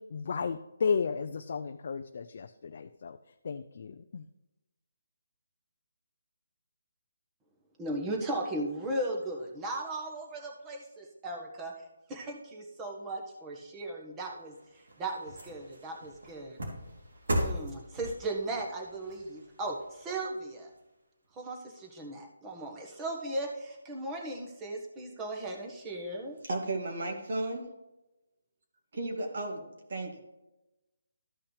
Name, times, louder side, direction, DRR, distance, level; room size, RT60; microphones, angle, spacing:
voice 1, 0.0-3.2 3.4-4.2, left 5 dB, 50° left, 7 dB, 0.4 m, -33 dB
voice 2, 7.8-11.7 12.1-16.6 17.3-20.7 21.3-26.4, right 1 dB, 15° right, 1 dB, 1.4 m, -37 dB
sound 1, 14.3-20.8 21.2-21.3, equal, 75° right, 3.0 m, -38 dB
voice 3, 26.4-27.7 28.9-29.6 29.9-30.2, right 2 dB, 55° right, 2 dB, 2.3 m, -34 dB
13.5 x 5.8 x 3.3 m, 0.99 s
hypercardioid pair, 165°, 0 cm